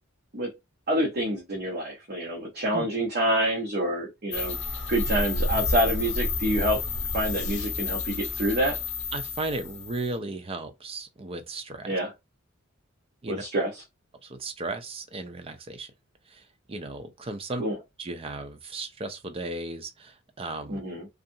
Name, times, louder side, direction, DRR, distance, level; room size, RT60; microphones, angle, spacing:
voice 1, 0.9-4.6 4.9-6.8 7.1-8.8 11.8-12.1 13.3-13.8 17.6-17.8 20.7-21.1, right 1 dB, 50° right, 1.0 m, -27 dB
sound 1, 4.3-10.1, left 3 dB, 60° left, 0.7 m, -30 dB
voice 2, 9.1-12.0 13.2-13.4 14.2-15.9 16.3-16.4 16.7-17.6 18.0-20.8, right 2 dB, 30° right, 0.5 m, -35 dB
2.6 x 2.5 x 2.6 m
head